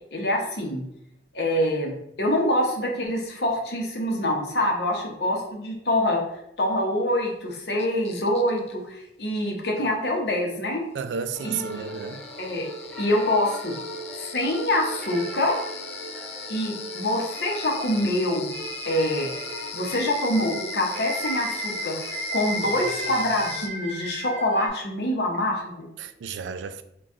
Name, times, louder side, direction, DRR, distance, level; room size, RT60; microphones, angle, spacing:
voice 1, 0.1-0.8 1.3-6.2 6.6-10.8 11.4-11.9 12.4-12.7 13.0-13.8 14.2-15.6 16.5-18.6 18.9-19.3 19.7-25.9, left 1 dB, 65° left, 0.8 m, -25 dB
sound 1, 7.8-8.7 11.0-11.1 11.4-23.7, left 7 dB, 35° left, 0.3 m, -39 dB
voice 2, 10.9-12.2 26.0-26.8, right 6 dB, 85° right, 0.3 m, -32 dB
sound 2, 11.3-23.6, right 1 dB, 5° left, 0.8 m, -40 dB
sound 3, 17.3-24.7, right 2 dB, 30° right, 0.6 m, -35 dB
3.9 x 2.3 x 3.7 m
head